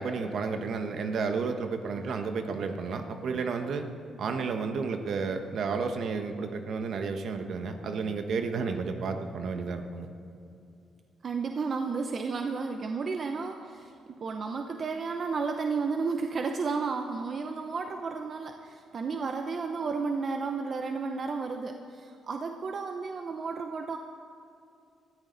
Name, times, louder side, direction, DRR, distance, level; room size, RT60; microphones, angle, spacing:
voice 1, 0.0-3.9 4.2-10.1, right 4 dB, 60° right, 6 dB, 1.2 m, -32 dB
voice 2, 11.2-24.0, right 4 dB, 40° right, 5 dB, 0.7 m, -32 dB
20.0 x 14.0 x 4.0 m, 2.6 s
cardioid pair, 120°, 0 cm